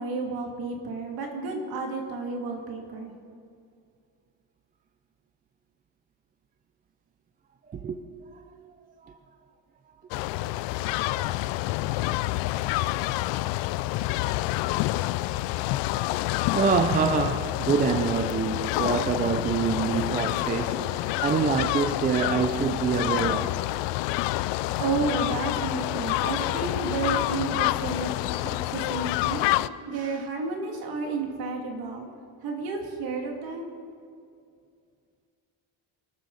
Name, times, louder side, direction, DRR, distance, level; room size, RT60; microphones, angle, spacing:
voice 1, 0.0-3.1 20.7-21.0 24.8-28.1 28.4-29.4 29.9-32.1 32.4-33.7, right 3 dB, 60° right, 1 dB, 2.5 m, -31 dB
voice 2, 7.7-8.0 9.0-9.2 10.4-10.5 16.5-23.6 30.0-30.2, right 6 dB, 20° right, 8 dB, 0.4 m, -26 dB
sound 1, 10.1-29.7, left 17 dB, 80° left, 0.5 m, -28 dB
24.5 x 12.5 x 4.0 m, 2.3 s
cardioid pair, 170°, 42 cm